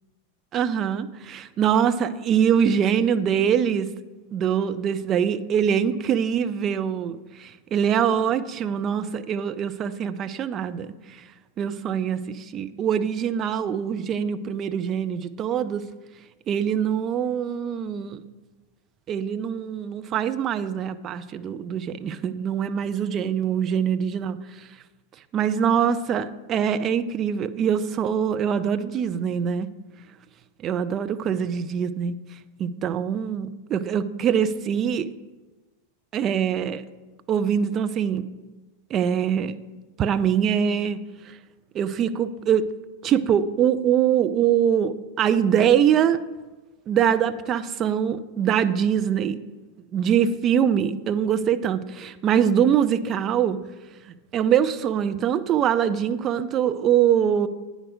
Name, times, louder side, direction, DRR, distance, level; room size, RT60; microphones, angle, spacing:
voice 1, 0.5-3.9 4.3-10.9 11.6-15.8 16.5-18.2 19.1-24.4 25.3-29.7 30.6-32.1 32.6-35.1 36.1-36.8 37.3-38.3 38.9-39.6 40.0-41.0 41.3-41.4 41.7-42.7 43.0-46.2 46.9-49.4 49.9-53.6 54.3-57.5, right 8 dB, 30° right, 0.5 m, -23 dB
8.9 x 5.1 x 6.3 m
figure-of-eight pair, 90°, 0 cm